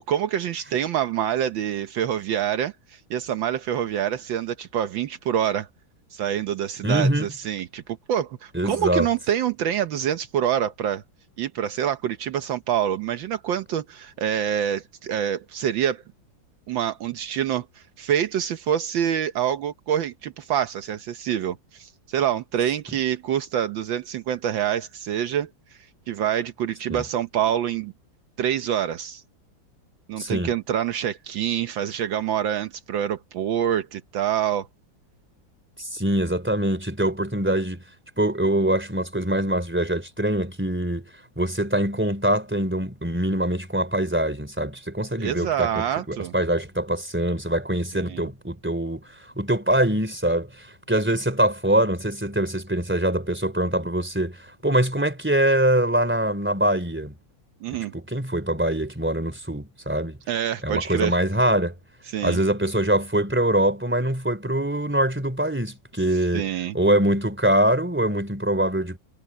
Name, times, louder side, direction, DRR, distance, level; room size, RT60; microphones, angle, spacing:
voice 1, 0.0-5.7 6.1-11.0 11.4-16.0 16.7-25.5 26.1-27.9 28.4-29.2 30.1-34.7 45.2-46.3 47.9-48.3 57.6-57.9 60.3-61.2 62.1-62.4 66.3-66.8, right 10 dB, 75° right, 1.6 m, -26 dB
voice 2, 6.8-7.3 8.5-9.1 26.9-27.0 30.2-30.5 35.8-37.8 38.2-41.0 41.4-45.7 46.1-49.0 49.4-54.4 54.6-57.1 57.9-60.2 60.6-61.7 62.2-66.5 66.7-69.0, right 1 dB, 5° right, 3.5 m, -23 dB
omnidirectional pair, 2.1 m